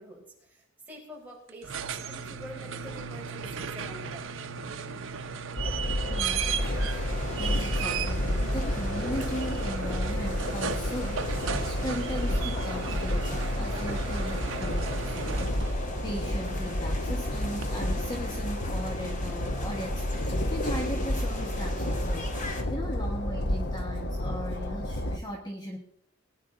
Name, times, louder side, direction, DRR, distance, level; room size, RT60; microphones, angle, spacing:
voice 1, 0.0-4.3, right 1 dB, 10° right, -4 dB, 4.4 m, -46 dB
sound 1, 1.5-15.9 17.6-17.7, right 6 dB, 70° right, 0.8 m, -36 dB
Train, 5.6-25.2, left 1 dB, 60° left, 1.1 m, -31 dB
voice 2, 6.1-6.7 7.4-25.8, equal, 20° left, 1 dB, 1.4 m, -38 dB
sound 2, 6.6-22.6, left 1 dB, 40° left, 1.9 m, -40 dB
19.0 x 10.5 x 3.9 m, 0.71 s
head